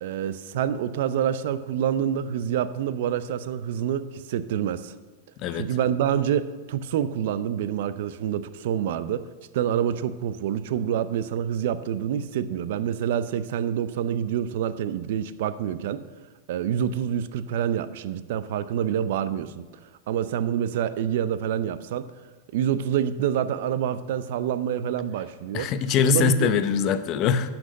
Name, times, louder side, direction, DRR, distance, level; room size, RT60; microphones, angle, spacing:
voice 1, 0.0-4.9 5.5-9.3 9.5-16.1 16.5-19.7 20.1-22.1 22.5-25.7 26.0-26.5, right 9 dB, 70° right, 14 dB, 0.6 m, -27 dB
voice 2, 25.5-27.5, left 7 dB, 45° left, 11 dB, 0.7 m, -23 dB
10.0 x 6.0 x 6.5 m, 1.2 s
hypercardioid pair, 115°, 0 cm